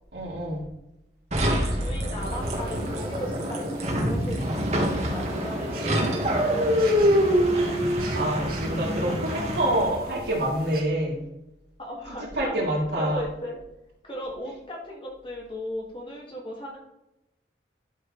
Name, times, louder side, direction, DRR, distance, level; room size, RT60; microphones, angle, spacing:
voice 1, 0.1-0.6 7.5-11.2 12.2-13.3, right 1 dB, 70° right, -3 dB, 2.9 m, -27 dB
sound 1, 1.3-10.0, equal, 40° right, 1.7 m, -25 dB
voice 2, 1.7-7.0 11.8-12.5 13.0-13.6 14.0-16.8, equal, 30° left, -2 dB, 2.1 m, -37 dB
sound 2, 2.2-10.8, right 2 dB, 55° right, 2.3 m, -44 dB
11.5 x 5.9 x 3.2 m, 0.90 s
head